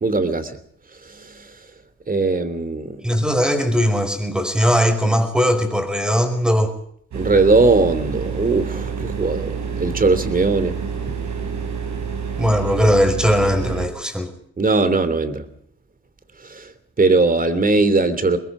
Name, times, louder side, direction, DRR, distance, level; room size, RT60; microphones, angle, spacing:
voice 1, 0.0-0.6 1.1-1.4 2.1-3.0 7.1-10.7 14.6-15.4 16.5-16.7 17.0-18.4, right 3 dB, 30° right, 13 dB, 3.0 m, -19 dB
voice 2, 3.0-6.7 12.4-14.3, equal, 5° right, 7 dB, 5.2 m, -19 dB
sound 1, 7.1-13.9, right 6 dB, 70° right, 6.5 m, -28 dB
25.5 x 21.0 x 5.0 m, 0.67 s
cardioid pair, 105°, 30 cm